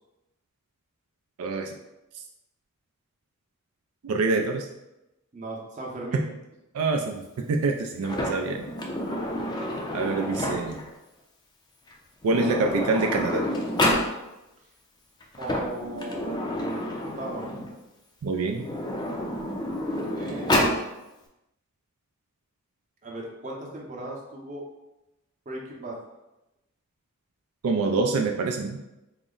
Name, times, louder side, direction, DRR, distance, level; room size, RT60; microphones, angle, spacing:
voice 1, 1.4-1.7 4.0-4.7 6.1-6.2 6.7-8.7 9.9-10.8 12.2-13.4 18.2-18.7 27.6-28.8, right 3 dB, 80° right, 3 dB, 0.4 m, -26 dB
voice 2, 5.3-6.3 15.4-16.6 17.2-17.5 20.1-20.7 23.0-24.6 25.5-26.0, right 1 dB, 35° right, -3 dB, 0.7 m, -37 dB
Sliding door, 8.0-10.9 11.9-12.0 12.2-14.1 15.2-17.7 18.5-20.8, left 1 dB, 20° left, 0.4 m, -28 dB
3.8 x 2.0 x 3.7 m, 0.95 s
head